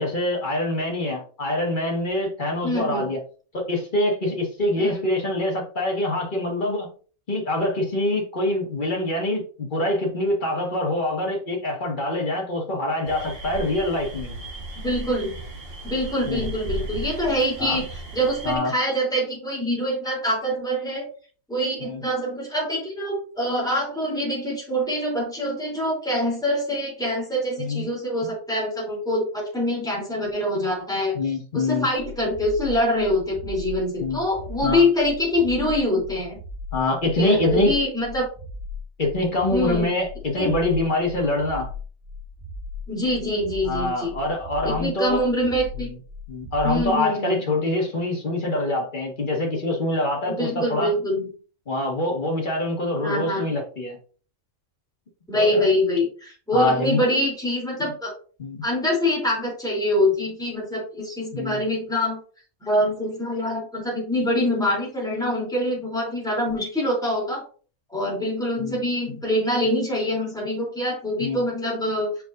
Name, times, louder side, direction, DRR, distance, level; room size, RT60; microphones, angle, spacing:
voice 1, 0.0-3.2 3.5-6.9 7.3-14.4 16.3-16.4 17.6-17.8 18.4-18.7 21.8-22.0 27.6-27.8 28.2-28.3 31.1-31.9 34.0-34.2 34.6-34.8 36.7-37.7 39.0-41.7 43.6-45.2 46.3-50.9 51.7-54.0 55.3-55.7 56.5-57.0 58.4-58.6 61.3-61.6 68.6-68.7 69.1-69.2 71.2-71.4, left 1 dB, 35° left, 0 dB, 1.9 m, -25 dB
voice 2, 2.6-3.1 4.8-5.0 14.7-15.4 15.8-17.9 18.1-21.1 21.5-31.2 31.5-36.4 37.2-38.3 39.5-39.9 40.4-40.5 42.9-44.1 44.6-45.9 46.6-47.5 50.3-51.3 53.0-53.5 55.3-58.1 58.6-62.2 62.6-67.4 67.9-72.1, left 1 dB, 5° left, -4 dB, 3.3 m, -25 dB
sound 1, 13.0-18.6, right 1 dB, 45° right, 2.0 m, -35 dB
sound 2, 32.0-46.9, left 3 dB, 80° right, 2.6 m, -37 dB
6.7 x 6.1 x 2.6 m, 0.40 s
omnidirectional pair, 1.4 m